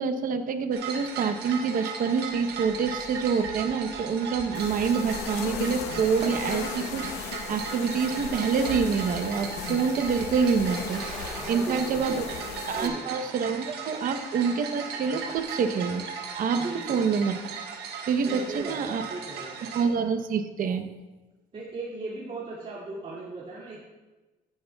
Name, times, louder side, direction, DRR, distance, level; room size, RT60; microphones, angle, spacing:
voice 1, 0.0-12.2 12.7-16.0 16.4-16.6 16.9-17.3 18.1-19.0 19.7-20.9, right 5 dB, 55° right, 8 dB, 0.9 m, -27 dB
sound 1, 0.7-19.8, right 6 dB, 75° right, 1.5 m, -37 dB
sound 2, 4.5-12.9, left 8 dB, 80° left, 0.8 m, -37 dB
sound 3, 10.9-13.7, equal, ahead, 2.2 m, -45 dB
voice 2, 11.4-12.4 12.7-13.1 16.6-17.0 18.2-19.6 21.5-23.8, right 3 dB, 35° right, -7 dB, 2.5 m, -38 dB
14.5 x 9.3 x 2.3 m, 1.2 s
cardioid pair, 110°, 17 cm